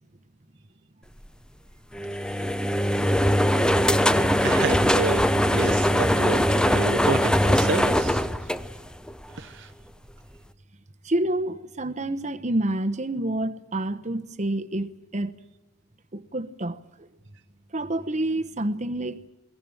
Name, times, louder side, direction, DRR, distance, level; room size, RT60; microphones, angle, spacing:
sound 1, 1.9-9.2, equal, 5° left, 0.7 m, -21 dB
voice 1, 4.1-8.3 9.4-9.7, right 3 dB, 60° right, 0.8 m, -31 dB
voice 2, 11.0-15.3 16.1-17.1 17.7-19.2, right 1 dB, 35° right, 1.0 m, -28 dB
22.5 x 18.5 x 9.0 m
head